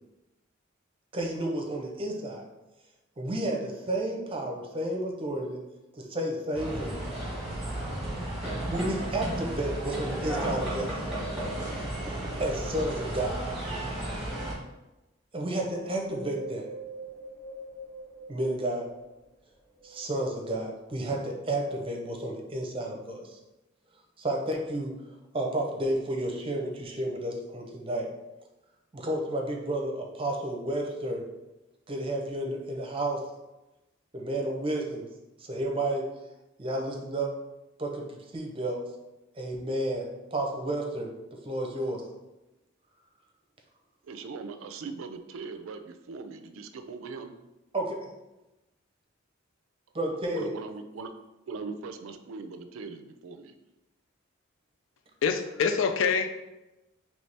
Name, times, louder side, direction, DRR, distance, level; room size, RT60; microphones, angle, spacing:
voice 1, 1.1-2.4 3.2-5.6 6.0-7.0 8.7-10.9 12.4-13.4 15.3-16.7 18.3-18.9 19.8-23.4 24.2-24.9 25.3-28.1 28.9-31.2 31.9-33.2 34.1-35.1 35.4-36.1 36.6-37.3 37.8-38.1 38.3-38.8 39.3-42.0 47.7-48.1 49.9-50.5, right 1 dB, 25° right, 1 dB, 0.6 m, -31 dB
sound 1, 6.5-14.5, right 1 dB, ahead, 1.2 m, -33 dB
Wind, 15.6-19.2 19.7-20.9 21.5-21.6, right 2 dB, 15° left, 1.3 m, -44 dB
voice 2, 44.0-47.4 50.1-51.2 51.5-53.5, right 4 dB, 80° right, 8 dB, 0.4 m, -40 dB
voice 3, 55.2-56.4, left 6 dB, 70° left, 7 dB, 0.4 m, -26 dB
4.1 x 3.2 x 3.3 m, 1.0 s
head